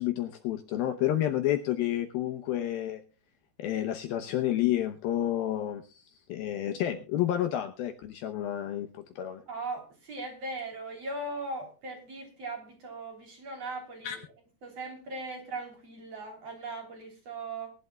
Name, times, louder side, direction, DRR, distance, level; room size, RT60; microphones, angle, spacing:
voice 1, 0.0-3.0 3.6-6.0 6.3-9.4 14.0-14.2, left 12 dB, 75° left, 7 dB, 2.4 m, -30 dB
voice 2, 9.5-14.2 14.6-17.7, right 2 dB, 40° right, 2 dB, 4.0 m, -39 dB
21.5 x 11.5 x 2.3 m, 0.35 s
omnidirectional pair, 4.9 m